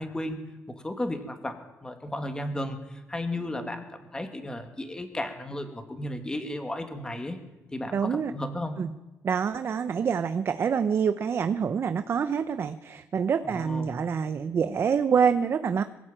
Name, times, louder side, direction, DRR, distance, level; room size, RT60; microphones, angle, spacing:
voice 1, 0.0-7.4 7.7-8.8 13.4-13.9, left 1 dB, 15° left, 7 dB, 2.5 m, -34 dB
voice 2, 7.9-8.3 8.8-8.9 9.2-15.8, right 6 dB, 45° right, 10 dB, 0.9 m, -26 dB
22.0 x 16.0 x 9.0 m, 1.0 s
cardioid pair, 125°, 6 cm